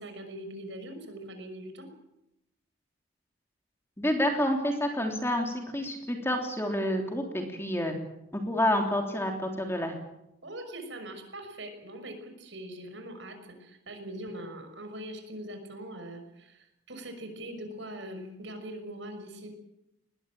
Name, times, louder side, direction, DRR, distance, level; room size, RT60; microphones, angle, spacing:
voice 1, 0.0-1.9 10.4-19.5, right 1 dB, 65° right, 6 dB, 6.1 m, -42 dB
voice 2, 4.0-7.9 8.3-9.9, left 1 dB, 10° left, 3 dB, 3.2 m, -28 dB
21.0 x 20.0 x 9.0 m, 0.86 s
head